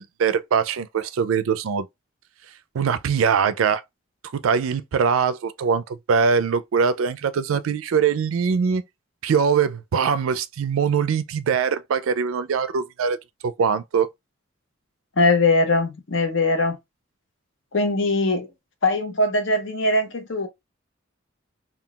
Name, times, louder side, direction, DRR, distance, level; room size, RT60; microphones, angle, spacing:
voice 1, 0.0-1.9 2.7-3.8 4.3-8.8 9.2-13.2 13.4-14.1, right 6 dB, 85° right, 0.4 m, -22 dB
voice 2, 15.2-16.8 17.7-18.5 18.8-20.5, left 2 dB, 65° left, 0.8 m, -21 dB
3.7 x 2.3 x 2.2 m
head